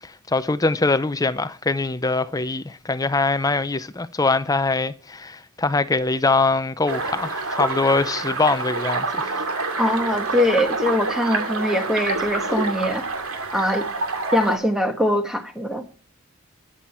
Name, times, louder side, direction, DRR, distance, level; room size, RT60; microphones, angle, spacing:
voice 1, 0.0-9.4, left 3 dB, 15° left, 0.5 m, -23 dB
sound 1, 6.9-14.6, right 3 dB, 85° right, 2.5 m, -27 dB
voice 2, 9.8-13.0 13.5-13.9 14.3-15.8, equal, ahead, 1.4 m, -22 dB
21.0 x 7.7 x 4.4 m
head